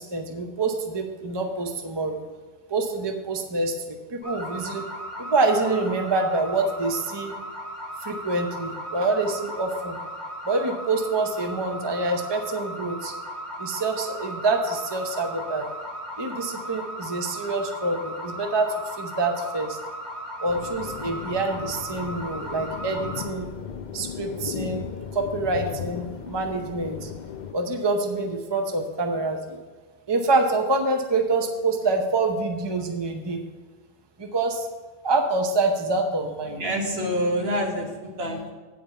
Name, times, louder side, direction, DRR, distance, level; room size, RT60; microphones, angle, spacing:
voice 1, 0.0-2.2 2.7-4.8 5.2-7.3 8.0-10.0 10.5-13.1 13.6-15.7 16.2-19.8 20.4-23.5 23.9-24.9 25.1-27.1 27.5-29.6 30.1-33.4 34.2-34.7 35.0-36.6, right 3 dB, 25° right, 4 dB, 0.7 m, -26 dB
Alarm Car or Home, 4.2-23.2, equal, 50° right, 3.0 m, -36 dB
sound 1, 20.5-27.5, left 8 dB, 55° left, 0.5 m, -36 dB
voice 2, 36.5-38.5, equal, 70° right, 0 dB, 1.7 m, -27 dB
8.8 x 5.1 x 7.0 m, 1.3 s
omnidirectional pair, 1.1 m